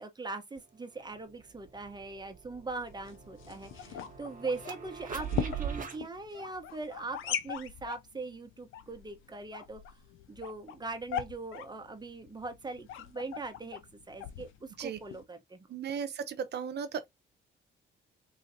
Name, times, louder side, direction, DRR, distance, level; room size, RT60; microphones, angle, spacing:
voice 1, 0.0-9.8 10.3-13.8 14.1-15.7, right 3 dB, 20° right, 1.1 m, -41 dB
sound 1, 0.6-0.7 1.0-6.0, right 7 dB, 40° right, 1.2 m, -42 dB
sound 2, 2.9-15.2, left 10 dB, 85° left, 0.6 m, -41 dB
voice 2, 15.7-17.1, right 7 dB, 60° right, 0.8 m, -36 dB
3.9 x 3.1 x 2.8 m
cardioid pair, 90°, 20 cm